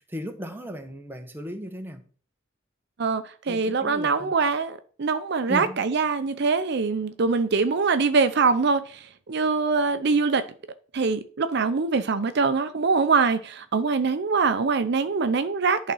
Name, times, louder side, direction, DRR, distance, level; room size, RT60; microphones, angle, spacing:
voice 1, 0.0-2.0 3.5-4.3 5.5-5.8, equal, 10° right, 1.0 m, -36 dB
voice 2, 3.0-10.5 10.9-15.9, right 4 dB, 60° right, 0.5 m, -23 dB
11.0 x 4.2 x 5.5 m
head